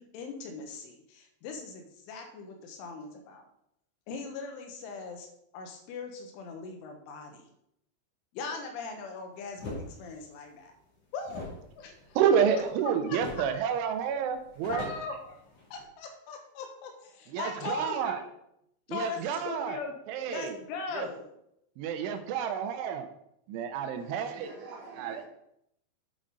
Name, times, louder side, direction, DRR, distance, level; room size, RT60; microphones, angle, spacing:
voice 1, 0.0-3.5 4.1-5.3 5.5-7.5 8.3-10.7 11.1-12.2 13.1-13.5 14.7-18.3 18.9-20.0 20.3-21.3, left 4 dB, 85° left, 4 dB, 3.6 m, -40 dB
sound 1, 9.6-9.9 11.2-12.8 13.2-13.5 13.8-13.9 14.3-15.8, left 2 dB, 40° left, 3.2 m, -41 dB
voice 2, 12.2-14.8 17.3-18.2 18.9-19.8 20.1-20.6 20.9-21.1 21.8-23.1 23.5-24.5 25.0-25.2, right 7 dB, 90° right, 8 dB, 3.2 m, -29 dB
voice 3, 24.0-25.3, right 4 dB, 60° right, -2 dB, 3.7 m, -47 dB
9.0 x 7.4 x 4.0 m, 0.77 s
omnidirectional pair, 5.4 m